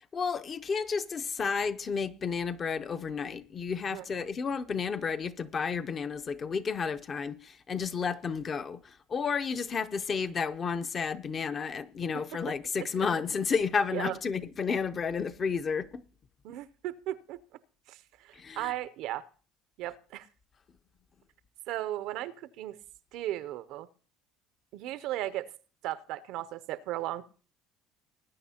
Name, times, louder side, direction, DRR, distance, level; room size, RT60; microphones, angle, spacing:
voice 1, 0.1-8.8 9.1-16.0 18.4-18.7, left 5 dB, 35° left, 0.5 m, -31 dB
voice 2, 3.9-4.2 13.9-14.2 16.4-17.4 17.9-18.0 18.2-19.2 19.8-20.3 21.7-22.8 23.1-23.9 24.7-25.5 25.8-27.2, right 14 dB, 65° right, 0.5 m, -36 dB
20.0 x 9.3 x 2.8 m
supercardioid pair, 115°, 0 cm